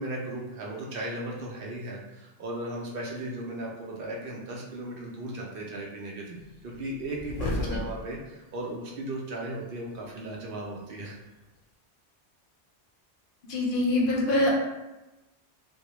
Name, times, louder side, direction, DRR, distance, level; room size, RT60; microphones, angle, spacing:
voice 1, 0.0-11.2, right 1 dB, 60° right, -2 dB, 0.6 m, -36 dB
sound 1, 6.4-8.2 9.1-9.2, left 2 dB, 85° left, 0.9 m, -34 dB
voice 2, 13.5-14.5, left 1 dB, 55° left, -3 dB, 0.7 m, -24 dB
2.2 x 2.0 x 2.9 m, 1.0 s
omnidirectional pair, 1.2 m